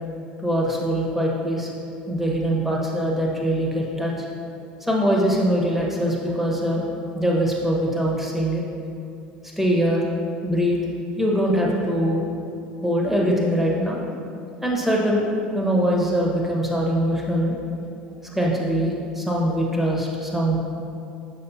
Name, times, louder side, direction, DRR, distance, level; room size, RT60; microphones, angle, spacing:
voice 1, 0.4-1.7 2.1-4.3 4.8-6.9 7.1-8.6 9.6-10.0 10.4-10.8 11.2-12.3 12.8-14.0 14.6-15.3 15.5-17.6 18.3-20.6, equal, 5° right, -3 dB, 1.5 m, -22 dB
7.1 x 6.2 x 2.9 m, 2.5 s
hypercardioid pair, 75°, 5 cm